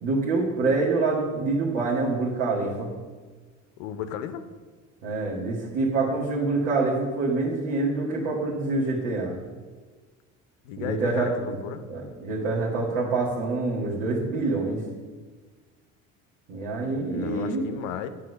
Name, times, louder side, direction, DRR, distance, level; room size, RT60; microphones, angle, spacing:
voice 1, 0.0-2.9 5.0-9.4 10.8-11.6 11.9-14.8 16.5-17.6, right 3 dB, 70° right, -6 dB, 1.7 m, -26 dB
voice 2, 3.8-4.5 10.6-11.8 17.1-18.1, left 9 dB, 80° left, 10 dB, 0.6 m, -34 dB
7.8 x 3.7 x 6.4 m, 1.4 s
supercardioid pair, 80°, 37 cm